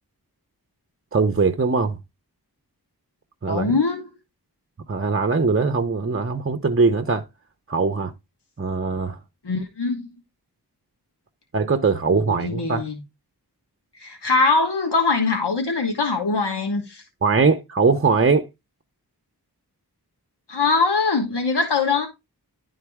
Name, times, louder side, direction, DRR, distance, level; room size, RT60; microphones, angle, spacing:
voice 1, 1.1-2.0 3.4-3.8 4.9-7.2 7.7-8.1 8.6-9.2 11.5-12.8 17.2-18.4, right 4 dB, 35° right, 0.7 m, -21 dB
voice 2, 3.5-4.1 9.4-10.1 12.3-13.0 14.0-17.0 20.5-22.1, left 4 dB, 85° left, 1.3 m, -22 dB
11.0 x 3.9 x 3.5 m
wide cardioid pair, 50°, 40 cm